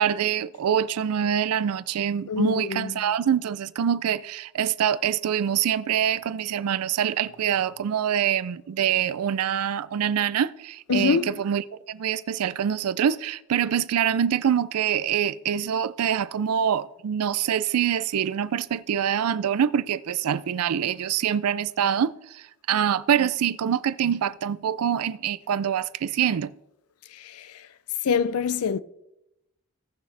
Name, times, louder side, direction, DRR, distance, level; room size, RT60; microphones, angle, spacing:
voice 1, 0.0-26.5, right 9 dB, 85° right, 0.4 m, -25 dB
voice 2, 2.3-2.9 10.9-11.4 27.1-27.6 28.0-28.8, left 6 dB, 80° left, 0.5 m, -25 dB
17.0 x 6.3 x 3.3 m
head